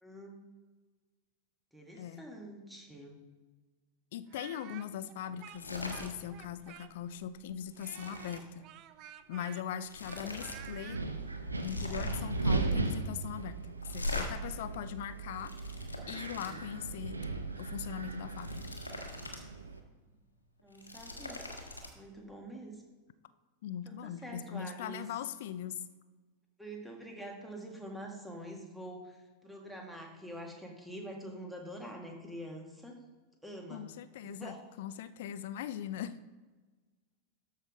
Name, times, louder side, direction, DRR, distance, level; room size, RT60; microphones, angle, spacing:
voice 1, 0.0-0.5 1.7-3.2 16.4-16.7 20.6-21.4 21.9-22.8 23.9-25.0 26.6-33.0 33.4-33.9 34.2-34.6, right 1 dB, 5° right, 1 dB, 1.9 m, -46 dB
voice 2, 4.1-8.6 9.3-11.0 11.6-15.5 16.1-17.2 17.6-18.6 23.6-25.8 33.7-36.1, left 9 dB, 55° left, 14 dB, 0.5 m, -40 dB
Speech, 4.3-7.2 7.8-11.0, right 12 dB, 40° right, 0.5 m, -51 dB
sound 1, 5.5-6.1 6.5-6.7 7.1-8.4 9.4-9.5 9.8-10.6 10.9-11.0 11.5-12.4 13.8-14.3 15.1-16.5 18.1-19.4 19.8-19.9 20.6-21.9, left 2 dB, 80° left, 1.3 m, -41 dB
Wind, 10.3-19.8, right 3 dB, 80° right, 0.8 m, -37 dB
13.0 x 5.6 x 3.8 m, 1.3 s
figure-of-eight pair, 90°, 0 cm